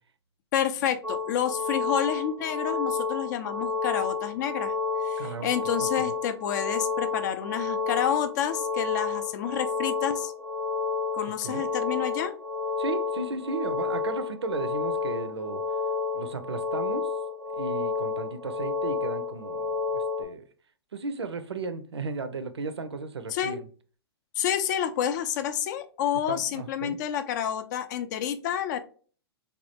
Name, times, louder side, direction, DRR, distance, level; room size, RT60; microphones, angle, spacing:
voice 1, 0.5-4.7 5.0-10.3 11.1-12.3 23.3-23.6 24.4-28.8, left 9 dB, 45° left, 0.4 m, -29 dB
sound 1, 1.0-20.2, left 4 dB, 5° left, 0.7 m, -30 dB
voice 2, 5.2-5.5 5.8-6.1 11.2-11.6 12.8-15.6 16.1-17.1 17.5-20.5 20.9-23.7 26.3-27.0, right 4 dB, 80° right, 0.5 m, -35 dB
3.3 x 2.3 x 2.7 m
figure-of-eight pair, 110°, 14 cm